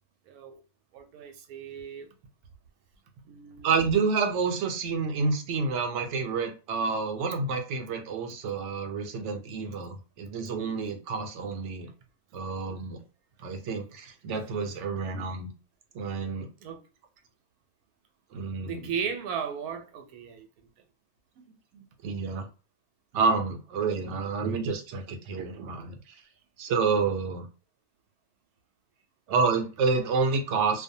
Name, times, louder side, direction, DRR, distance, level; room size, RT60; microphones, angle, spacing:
voice 1, 0.3-0.6 0.9-2.1 3.2-3.7 16.6-16.8 18.6-20.5, right 7 dB, 85° right, 1.1 m, -36 dB
voice 2, 3.6-11.9 12.3-13.0 13.4-15.5 15.9-16.5 18.3-18.9 21.7-22.5 23.1-26.0 26.6-27.5 29.3-30.8, right 4 dB, 65° right, 0.8 m, -29 dB
2.5 x 2.1 x 2.6 m
omnidirectional pair, 1.6 m